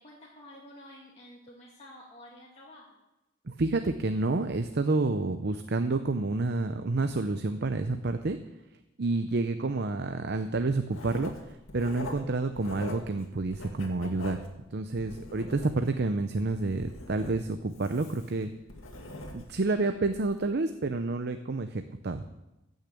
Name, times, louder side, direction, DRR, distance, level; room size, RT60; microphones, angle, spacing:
voice 1, 0.0-3.0 15.2-15.3, left 1 dB, 30° left, -5 dB, 2.0 m, -50 dB
voice 2, 3.5-8.4 9.0-14.4 14.7-18.5 19.3-22.2, right 3 dB, 55° right, 8 dB, 0.7 m, -29 dB
Writing, 10.9-13.2 13.5-16.0 16.4-19.6 20.1-20.3, left 2 dB, 85° left, 2.2 m, -43 dB
14.5 x 6.6 x 8.4 m, 0.96 s
head